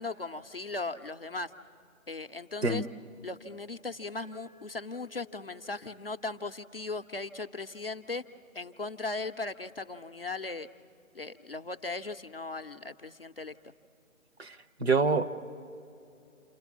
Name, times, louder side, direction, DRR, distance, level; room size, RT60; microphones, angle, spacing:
voice 1, 0.0-1.5 2.1-2.8 3.2-8.3 8.5-10.7 11.1-13.7, left 3 dB, 45° left, 7 dB, 0.5 m, -38 dB
Mallet percussion, 4.2-7.1, left 4 dB, 85° right, 4.7 m, -60 dB
voice 2, 14.4-15.3, right 4 dB, 50° right, 7 dB, 1.0 m, -26 dB
29.0 x 24.5 x 6.0 m, 2.6 s
hypercardioid pair, 170°, 41 cm